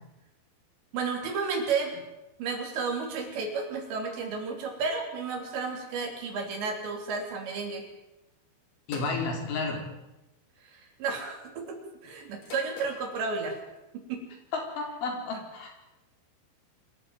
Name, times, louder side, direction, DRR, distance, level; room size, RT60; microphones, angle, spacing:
voice 1, 0.9-2.0 2.4-7.9 10.7-11.8 12.0-13.6 13.9-14.2, right 4 dB, 65° right, 3 dB, 5.4 m, -32 dB
voice 2, 8.9-9.8 14.5-15.7, left 3 dB, 80° left, 2 dB, 6.6 m, -32 dB
sound 1, 8.9-9.2 10.4-10.8 12.4-13.1, left 2 dB, 40° left, 4.2 m, -42 dB
25.5 x 14.0 x 8.9 m, 0.96 s
omnidirectional pair, 5.5 m